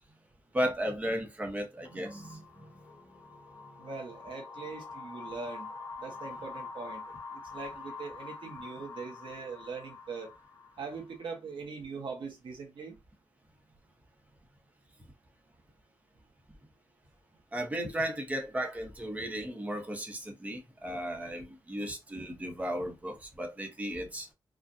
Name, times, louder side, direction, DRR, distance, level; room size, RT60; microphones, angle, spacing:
voice 1, 0.5-2.4 3.1-3.2 17.5-24.3, equal, 15° right, 0.9 m, -35 dB
sound 1, 1.8-11.3, left 4 dB, 75° left, 1.0 m, -46 dB
voice 2, 3.8-5.7 6.0-10.3 10.8-13.0, right 4 dB, 90° right, 1.1 m, -41 dB
4.8 x 2.4 x 2.6 m
wide cardioid pair, 175°, 8 cm